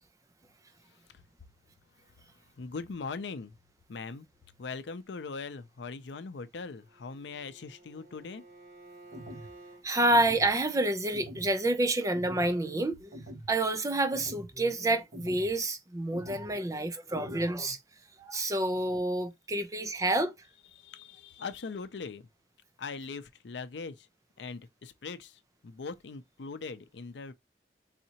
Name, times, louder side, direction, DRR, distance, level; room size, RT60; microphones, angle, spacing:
voice 1, 2.6-3.6 3.9-4.3 4.6-8.4 20.7-22.3 22.8-24.1 24.4-27.3, left 4 dB, 80° left, 0.5 m, -41 dB
Bowed string instrument, 6.7-9.9, right 2 dB, 90° right, 2.5 m, -53 dB
sound 1, 9.1-9.5 10.1-10.5 11.1-11.5 12.1-12.5 13.1-13.5 14.1-14.5 15.1-15.5 16.1-16.5 17.1-17.5, equal, 55° right, 1.4 m, -44 dB
voice 2, 9.8-13.1 13.5-17.8 18.2-20.3, right 1 dB, 20° right, 0.5 m, -28 dB
4.1 x 2.8 x 2.8 m
head